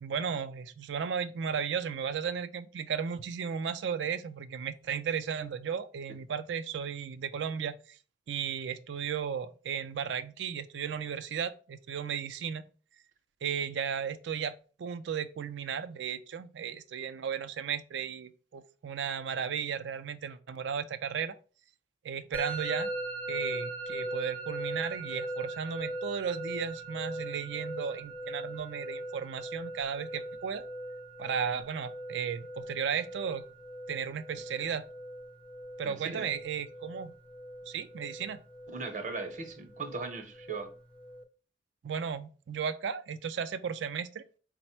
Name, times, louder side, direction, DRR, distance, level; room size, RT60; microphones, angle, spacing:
voice 1, 0.0-8.0 8.3-12.7 13.4-21.3 22.0-22.9 23.3-30.6 31.2-33.4 33.9-34.8 35.8-37.1 37.7-38.4 41.8-44.2, right 7 dB, 85° right, 0.4 m, -35 dB
Musical instrument, 22.3-41.2, right 1 dB, 5° left, 0.3 m, -40 dB
voice 2, 35.8-36.3 38.7-40.7, right 4 dB, 45° right, 0.7 m, -38 dB
4.1 x 2.1 x 4.3 m
head